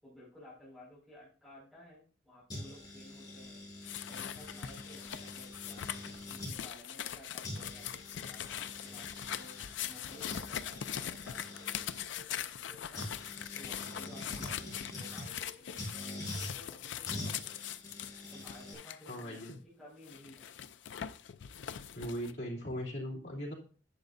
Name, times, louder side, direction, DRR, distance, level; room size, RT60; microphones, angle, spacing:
voice 1, 0.0-3.6 4.1-5.9 6.3-17.7 18.3-20.5, left 1 dB, ahead, -10 dB, 5.0 m, -55 dB
sound 1, 2.5-6.6 7.1-7.2 7.4-12.0 12.9-15.3 15.8-16.5 17.0-18.7, left 1 dB, 20° left, 4.2 m, -45 dB
sound 2, 3.8-19.5 20.1-22.3, left 10 dB, 85° left, 0.4 m, -42 dB
voice 2, 19.1-19.6 21.9-23.5, equal, 65° left, -4 dB, 2.8 m, -39 dB
10.5 x 8.0 x 2.6 m, 0.39 s
head